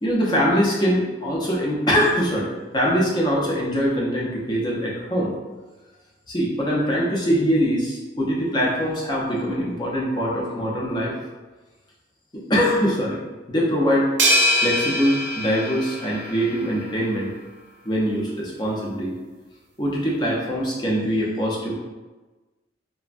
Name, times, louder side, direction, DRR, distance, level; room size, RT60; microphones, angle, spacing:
voice 1, 0.0-5.3 6.3-11.2 12.3-13.2 13.5-14.1 14.6-17.3 17.8-19.1 19.8-21.7, equal, 25° left, -4 dB, 0.4 m, -23 dB
sound 1, 14.2-16.7, equal, 80° right, 0.6 m, -23 dB
3.2 x 2.0 x 2.4 m, 1.2 s
head